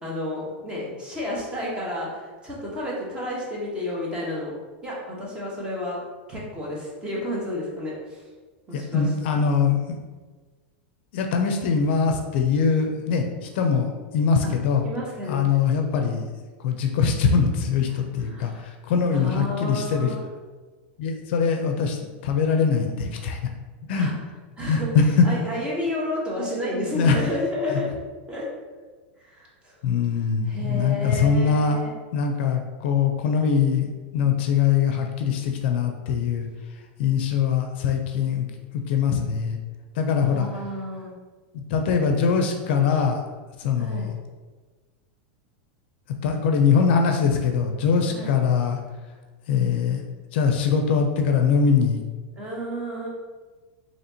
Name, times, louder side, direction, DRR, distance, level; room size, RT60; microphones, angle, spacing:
voice 1, 0.0-4.5 4.8-6.0 6.3-8.2 8.7-9.4 14.4-15.4 18.3-18.6 19.1-20.2 23.9-24.1 24.6-24.9 25.2-28.0 28.3-28.5 29.2-29.7 30.4-31.9 40.0-41.1 43.8-44.1 48.1-48.5 52.4-53.1, left 1 dB, 15° right, -5 dB, 1.1 m, -31 dB
voice 2, 8.7-10.0 11.1-13.9 14.1-14.8 15.3-16.3 16.6-20.1 21.0-23.4 23.8-24.1 24.7-25.2 26.9-27.2 29.8-31.8 32.1-33.9 34.1-36.5 37.0-38.5 38.7-39.6 40.0-40.5 41.5-43.2 43.6-44.1 46.2-48.8 49.5-50.0 50.3-52.0, left 6 dB, 60° left, 4 dB, 0.5 m, -22 dB
4.2 x 2.9 x 2.8 m, 1.3 s
supercardioid pair, 150°, 7 cm